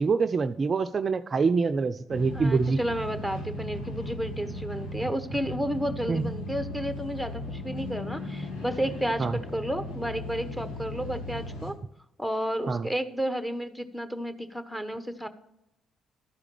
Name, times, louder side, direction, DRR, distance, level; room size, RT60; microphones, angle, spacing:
voice 1, 0.0-2.8 6.1-6.3 9.2-9.3 12.7-12.9, right 4 dB, 45° right, 10 dB, 0.5 m, -25 dB
sound 1, 2.1-11.7, left 1 dB, 75° left, 2.0 m, -37 dB
voice 2, 2.3-11.7 12.2-15.3, equal, ahead, 9 dB, 1.2 m, -32 dB
12.5 x 4.9 x 6.7 m, 0.81 s
hypercardioid pair, 50°, 0 cm